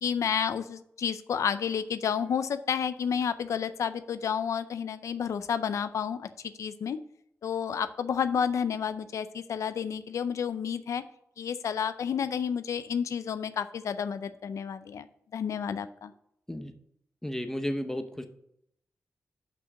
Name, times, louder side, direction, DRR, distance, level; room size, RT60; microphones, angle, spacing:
voice 1, 0.0-6.3 6.6-7.0 7.4-11.0 11.4-15.1 15.3-16.1, left 7 dB, 90° left, 12 dB, 0.4 m, -30 dB
voice 2, 17.2-18.3, equal, 10° left, 7 dB, 0.8 m, -33 dB
6.1 x 5.7 x 6.4 m, 0.75 s
wide cardioid pair, 100°, 5 cm